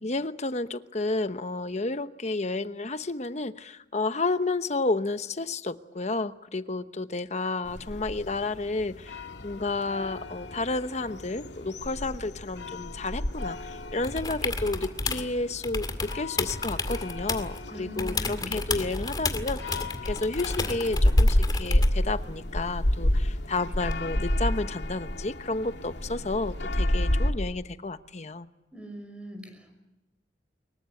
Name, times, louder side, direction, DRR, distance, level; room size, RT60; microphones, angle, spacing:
voice 1, 0.0-28.5, left 3 dB, 40° left, 11 dB, 1.0 m, -31 dB
sound 1, 7.6-27.3, left 1 dB, 85° left, 2.3 m, -30 dB
sound 2, 14.0-15.3 15.6-17.6 18.0-22.0 23.9-24.0, left 3 dB, 25° left, 2.1 m, -32 dB
voice 2, 17.7-18.6 28.7-29.7, left 1 dB, 5° right, 6 dB, 5.7 m, -41 dB
24.5 x 22.5 x 8.4 m, 0.98 s
head